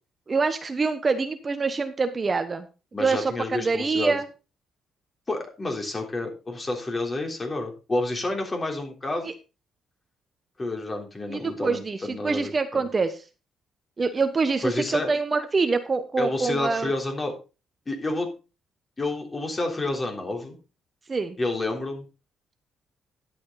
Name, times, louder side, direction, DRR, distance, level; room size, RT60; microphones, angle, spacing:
voice 1, 0.3-2.7 3.0-4.2 9.2-9.3 11.3-13.2 14.0-16.9 21.1-21.4, right 4 dB, 30° right, 9 dB, 1.0 m, -25 dB
voice 2, 2.9-4.2 5.3-9.3 10.6-12.9 14.6-15.1 16.2-17.3 17.9-18.3 19.0-20.6 21.4-22.0, left 2 dB, 25° left, 2 dB, 3.5 m, -29 dB
11.0 x 8.5 x 3.9 m, 0.31 s
cardioid pair, 90°, 0 cm